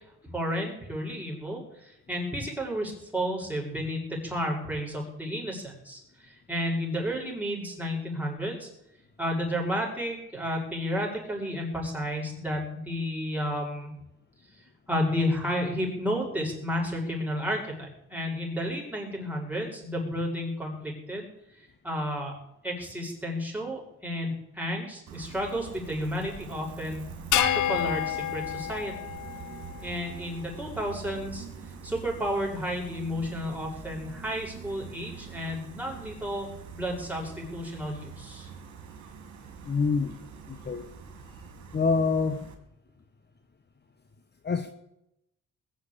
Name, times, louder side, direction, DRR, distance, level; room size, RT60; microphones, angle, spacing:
voice 1, 0.2-8.7 9.2-13.9 14.9-21.3 21.8-22.3 22.6-27.0 27.3-28.9 29.8-31.5 31.8-36.5 36.7-38.5, equal, 5° right, -1 dB, 7.0 m, -32 dB
Gull seagull, 25.1-42.5, right 5 dB, 70° right, 3.8 m, -44 dB
sound 1, 27.3-29.9, left 12 dB, 80° left, 1.0 m, -29 dB
voice 2, 39.6-40.2 40.5-40.9 41.7-42.5 44.4-44.7, left 4 dB, 35° left, 8 dB, 1.4 m, -26 dB
20.5 x 7.8 x 8.8 m, 0.84 s
cardioid pair, 90°, 30 cm